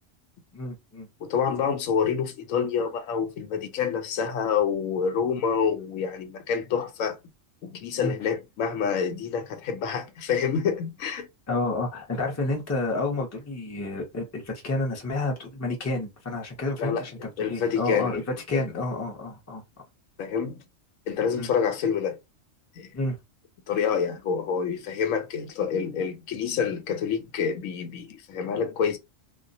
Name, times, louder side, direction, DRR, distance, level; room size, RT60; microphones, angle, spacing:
voice 1, 0.5-1.1 8.0-8.3 11.5-19.6 21.4-21.5 22.9-23.2, left 2 dB, 20° left, 0.5 m, -30 dB
voice 2, 1.2-7.2 7.6-11.3 16.8-18.2 18.5-18.6 20.2-20.6 21.1-22.2 22.8-22.9 23.7-29.0, left 7 dB, 85° left, 1.0 m, -27 dB
2.3 x 2.1 x 2.6 m
omnidirectional pair, 1.4 m